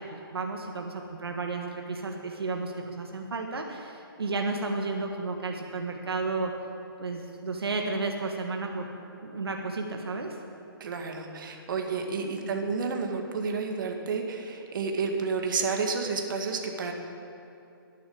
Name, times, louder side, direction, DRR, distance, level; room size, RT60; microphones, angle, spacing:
voice 1, 0.0-6.5 7.0-8.9 9.2-10.4 12.4-12.5, right 3 dB, 85° right, 2 dB, 1.6 m, -32 dB
voice 2, 10.8-16.9, right 4 dB, 55° right, 3 dB, 2.0 m, -30 dB
12.5 x 10.5 x 8.6 m, 2.7 s
hypercardioid pair, 150°, 13 cm